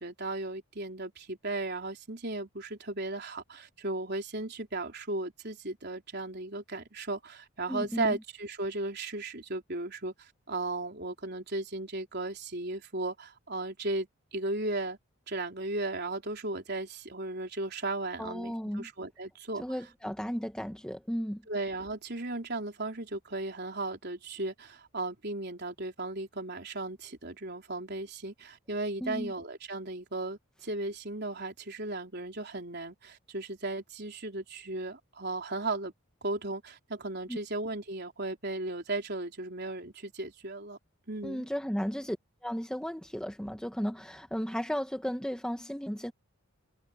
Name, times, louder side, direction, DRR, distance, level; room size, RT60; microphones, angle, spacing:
voice 1, 0.0-15.0 15.3-19.6 21.5-35.9 36.2-40.8 41.1-41.5, right 2 dB, 50° right, 4.3 m, -36 dB
voice 2, 7.7-8.2 18.2-18.9 19.6-21.4 29.0-29.3 37.3-37.4 41.2-42.2 42.4-46.1, equal, 5° left, 1.2 m, -34 dB
head